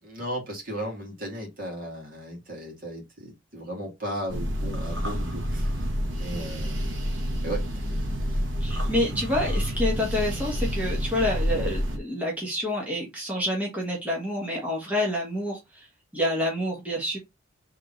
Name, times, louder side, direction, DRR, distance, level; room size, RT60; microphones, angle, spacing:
voice 1, 0.0-5.9 6.2-6.8 7.4-8.4, right 1 dB, 45° right, 2.1 m, -36 dB
sound 1, 4.3-12.0, equal, 65° right, 1.1 m, -28 dB
voice 2, 8.6-15.9 16.1-17.2, left 1 dB, 5° right, 1.4 m, -28 dB
3.7 x 3.6 x 3.9 m
head